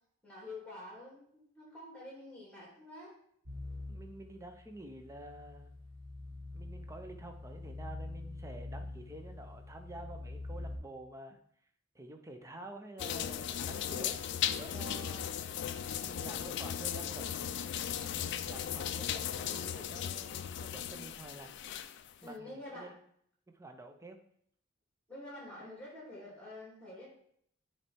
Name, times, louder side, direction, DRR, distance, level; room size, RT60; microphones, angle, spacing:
voice 1, 0.2-3.2 16.4-16.6 17.0-17.3 22.2-22.9 25.1-27.1, left 1 dB, 5° left, -4 dB, 3.1 m, -48 dB
sound 1, 3.5-10.8, left 2 dB, 50° right, 2.0 m, -45 dB
voice 2, 3.9-5.7 6.5-11.4 11.9-15.3 16.0-17.5 18.0-21.5 22.2-22.9 23.5-24.2, right 2 dB, 15° right, 5 dB, 0.7 m, -49 dB
sound 2, 13.0-22.1, left 9 dB, 60° left, 0.3 m, -37 dB
9.3 x 3.3 x 4.5 m, 0.66 s
head